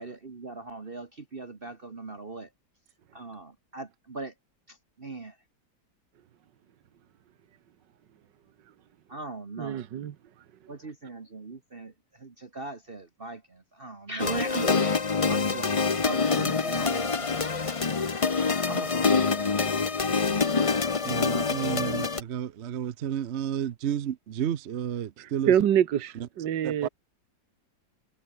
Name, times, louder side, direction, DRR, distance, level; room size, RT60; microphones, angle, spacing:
voice 1, 0.0-2.5 3.1-4.3 4.7-5.3 9.1-9.8 10.7-11.9 12.2-15.7 16.0-17.3 18.6-19.7 20.0-20.4, right 3 dB, 30° right, 1.7 m, -39 dB
voice 2, 9.6-10.1 25.2-26.9, right 10 dB, 80° right, 1.8 m, -26 dB
sound 1, 14.2-22.2, left 4 dB, 35° left, 0.6 m, -26 dB
voice 3, 21.0-25.5 26.1-26.3 26.6-26.9, right 9 dB, 55° right, 0.8 m, -31 dB
omnidirectional pair, 1.9 m